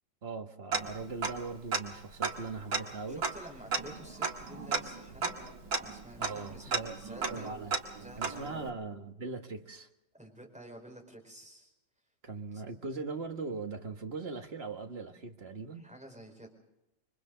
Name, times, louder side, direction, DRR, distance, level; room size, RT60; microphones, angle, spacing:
voice 1, 0.2-3.2 6.2-7.0 7.3-7.8 8.2-9.9 12.2-15.8, right 4 dB, 35° right, 5 dB, 1.6 m, -40 dB
Tick-tock, 0.7-1.5 1.7-1.8 2.2-8.7, right 4 dB, 60° right, 2.3 m, -35 dB
voice 2, 3.1-5.4 5.8-7.6 8.0-8.7 10.1-11.7 15.7-16.5, right 1 dB, 5° right, 1 dB, 4.6 m, -50 dB
28.0 x 24.0 x 3.9 m, 0.90 s
omnidirectional pair, 1.8 m